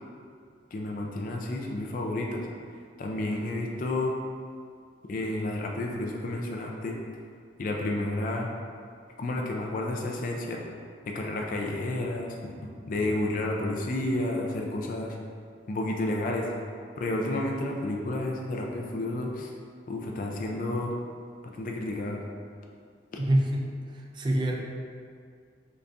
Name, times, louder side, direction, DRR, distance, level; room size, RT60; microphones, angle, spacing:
voice 1, 0.7-2.5 3.0-4.2 5.1-7.0 7.6-8.5 9.2-10.6 11.1-12.5 12.9-15.2 15.7-16.5 17.0-19.5 19.9-20.9 21.4-22.2, left 1 dB, 50° left, 0 dB, 0.4 m, -31 dB
voice 2, 23.2-24.6, right 1 dB, 25° right, 1 dB, 0.3 m, -26 dB
3.9 x 3.4 x 2.4 m, 2.2 s
head